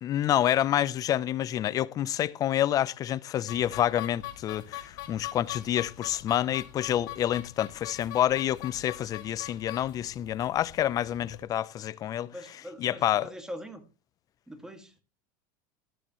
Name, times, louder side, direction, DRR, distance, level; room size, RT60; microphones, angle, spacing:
voice 1, 0.0-12.3 12.8-13.3, left 11 dB, 35° left, 0.6 m, -28 dB
sound 1, 3.5-11.4, left 14 dB, 75° left, 2.5 m, -43 dB
voice 2, 12.3-13.9 14.5-14.9, equal, 5° right, 2.1 m, -42 dB
14.0 x 12.5 x 3.1 m
supercardioid pair, 120°, 10 cm